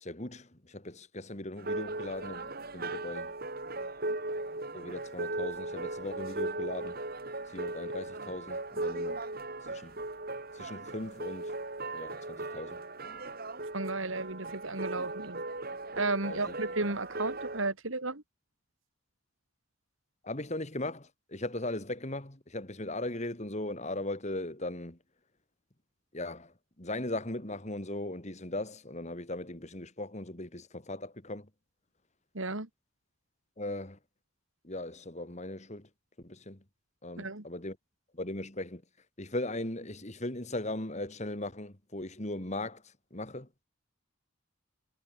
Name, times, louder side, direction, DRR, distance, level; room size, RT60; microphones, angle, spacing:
voice 1, 0.0-3.3 4.7-7.0 7.5-9.2 9.7-10.0 10.5-11.5 11.9-12.8 16.2-16.5 20.2-25.0 26.1-31.5 33.6-34.0 34.6-35.9 36.2-36.6 37.0-37.8 38.1-38.8 39.2-42.8 43.1-43.5, left 1 dB, 35° left, 2.6 m, -38 dB
sound 1, 1.6-17.7, right 2 dB, 45° right, 4.1 m, -38 dB
voice 2, 13.7-15.4 16.0-18.2 32.3-32.7 37.2-37.4, right 3 dB, 70° right, 3.1 m, -33 dB
head